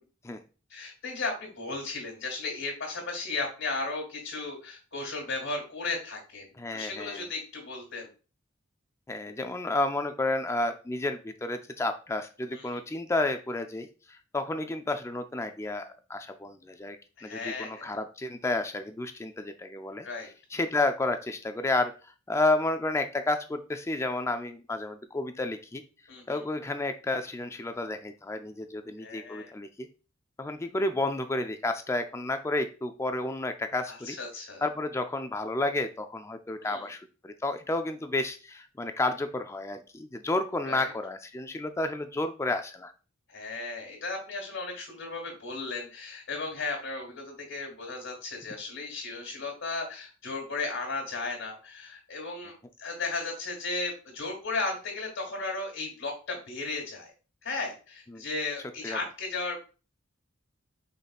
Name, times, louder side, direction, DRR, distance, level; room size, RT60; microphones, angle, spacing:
voice 1, 0.7-6.5 6.7-8.1 12.5-12.8 17.2-18.0 20.0-20.3 26.1-26.4 29.0-29.5 33.9-34.6 36.6-36.9 40.6-40.9 43.3-57.1 57.4-59.6, left 3 dB, 90° left, -2 dB, 1.7 m, -35 dB
voice 2, 6.6-7.3 9.1-17.0 17.2-20.1 20.5-25.8 26.3-29.9 30.4-34.2 34.6-42.9 58.1-58.2 58.8-59.0, left 2 dB, 15° left, 7 dB, 0.3 m, -31 dB
5.1 x 3.8 x 2.3 m, 0.34 s
head